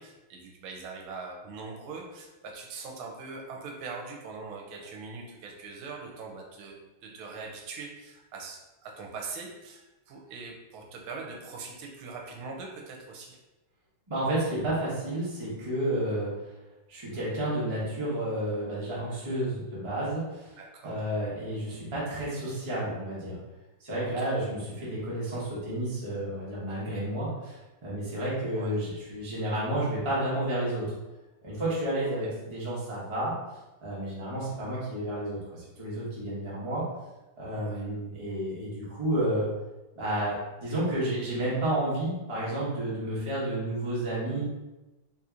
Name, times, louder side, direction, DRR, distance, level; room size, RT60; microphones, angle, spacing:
voice 1, 0.0-13.4 20.6-21.0 24.0-24.3 28.5-28.7 32.2-32.3 37.5-37.9, right 4 dB, 80° right, 1 dB, 1.4 m, -42 dB
voice 2, 14.1-16.3 16.9-20.6 20.8-23.4 23.8-30.9 31.4-33.3 33.8-36.8 37.4-39.5 39.9-44.4, right 1 dB, 25° right, -8 dB, 0.7 m, -31 dB
3.9 x 2.8 x 2.4 m, 1.1 s
omnidirectional pair, 2.4 m